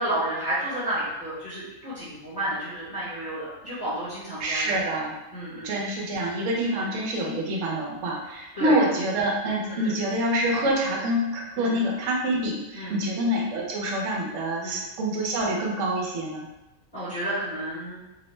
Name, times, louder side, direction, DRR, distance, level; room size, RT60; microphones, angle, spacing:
voice 1, 0.0-4.7 5.3-5.7 6.7-7.0 8.5-8.8 9.6-10.0 11.6-11.8 12.7-13.0 14.6-14.8 16.9-18.0, right 1 dB, 30° left, -12 dB, 0.9 m, -31 dB
voice 2, 4.4-5.1 5.6-16.5, right 1 dB, 65° right, -2 dB, 0.9 m, -26 dB
2.7 x 2.0 x 3.1 m, 0.96 s
omnidirectional pair, 1.5 m